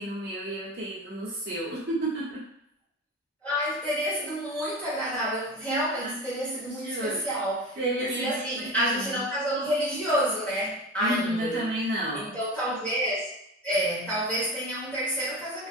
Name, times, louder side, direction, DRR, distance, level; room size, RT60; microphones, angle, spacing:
voice 1, 0.0-2.4 6.0-6.1 6.7-7.2 7.8-9.2 11.0-12.3, right 1 dB, 50° right, -8 dB, 0.9 m, -31 dB
voice 2, 3.4-7.8 8.1-11.7 12.1-13.3 13.6-15.7, equal, 10° left, -10 dB, 1.2 m, -29 dB
2.6 x 2.4 x 2.5 m, 0.77 s
head